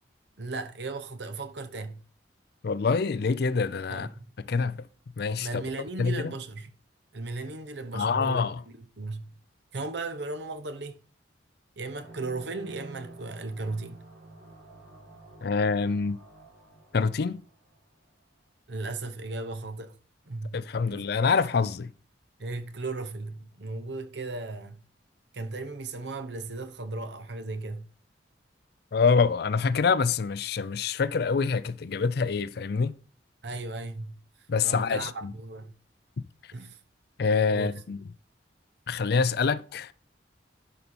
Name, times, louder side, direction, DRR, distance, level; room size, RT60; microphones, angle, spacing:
voice 1, 0.4-2.0 3.9-4.3 5.4-6.7 7.1-9.4 9.7-11.0 11.8-14.0 18.7-19.9 20.3-20.6 20.9-21.0 22.4-24.8 25.3-27.9 33.4-34.2 34.6-35.7 36.5-36.8 37.5-37.7, right 2 dB, 65° right, 0.9 m, -36 dB
voice 2, 2.6-4.1 4.5-4.8 5.2-5.6 6.0-6.3 7.9-8.6 15.4-16.2 16.9-17.4 20.5-21.9 28.9-33.0 34.5-35.3 37.2-38.0 38.9-39.9, left 5 dB, 60° left, 0.4 m, -26 dB
sound 1, 11.9-18.1, right 2 dB, 80° right, 4.3 m, -49 dB
11.0 x 5.2 x 4.3 m
head